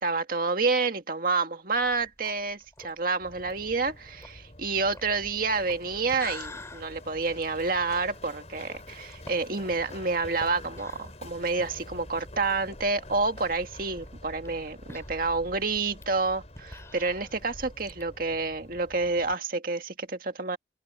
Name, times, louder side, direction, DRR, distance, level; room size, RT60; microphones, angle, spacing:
voice 1, 0.0-20.6, right 3 dB, 50° right, 1.9 m, -29 dB
sound 1, 1.7-12.0 12.3-12.4 12.7-12.8 13.5-18.0, left 2 dB, 15° left, 4.1 m, -48 dB
Run, 3.2-19.3, left 1 dB, 35° left, 4.6 m, -47 dB
head